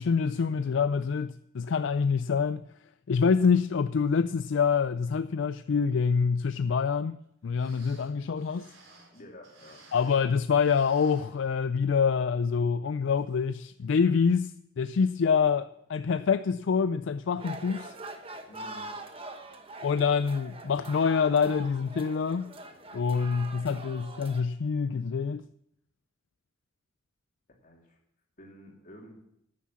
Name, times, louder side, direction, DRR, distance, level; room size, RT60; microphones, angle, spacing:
voice 1, 0.0-2.6 3.1-7.2 7.4-8.7 9.9-17.9 19.8-22.5 22.9-25.4, left 6 dB, 65° left, 0.4 m, -26 dB
sound 1, 7.2-7.3 7.5-10.3 10.6-11.9 12.3-12.4 13.1-13.3 13.8-13.9, right 2 dB, 80° right, 4.2 m, -56 dB
voice 2, 9.1-9.9 18.5-18.9 27.6-28.0 28.4-29.2, equal, 40° left, 3.1 m, -50 dB
sound 2, 17.4-24.4, right 2 dB, 30° right, 1.1 m, -43 dB
11.0 x 9.4 x 7.2 m
head